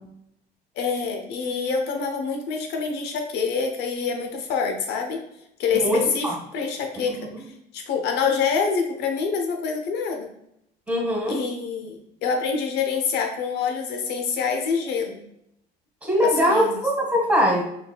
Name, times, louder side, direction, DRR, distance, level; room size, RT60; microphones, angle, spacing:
voice 1, 0.8-5.2 5.6-7.3 7.7-10.3 11.3-15.2 16.2-16.9, left 5 dB, 80° left, 3 dB, 0.8 m, -26 dB
voice 2, 5.7-6.3 7.3-7.4 10.9-11.4 16.0-17.6, equal, 10° right, -2 dB, 1.5 m, -21 dB
4.6 x 3.6 x 2.2 m, 0.77 s
cardioid pair, 110°, 17 cm